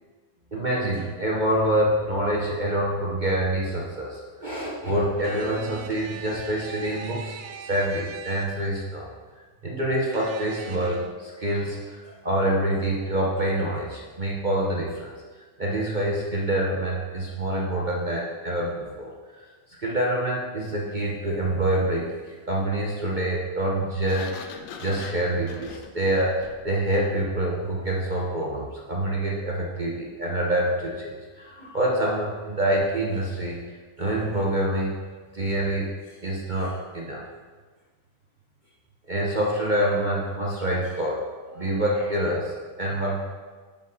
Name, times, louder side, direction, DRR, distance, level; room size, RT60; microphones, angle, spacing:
voice 1, 0.5-9.1 9.6-15.1 15.6-19.5 19.8-33.6 34.0-34.9 35.3-35.9 36.2-37.2 39.1-41.2 41.5-43.2, right 1 dB, 40° right, -3 dB, 0.6 m, -26 dB
sound 1, 5.2-8.8 10.1-11.1, right 8 dB, 75° right, 1.4 m, -41 dB
Sliding door, 24.0-26.8, left 6 dB, 70° left, 1.1 m, -42 dB
9.8 x 5.3 x 4.0 m, 1.4 s
omnidirectional pair, 2.1 m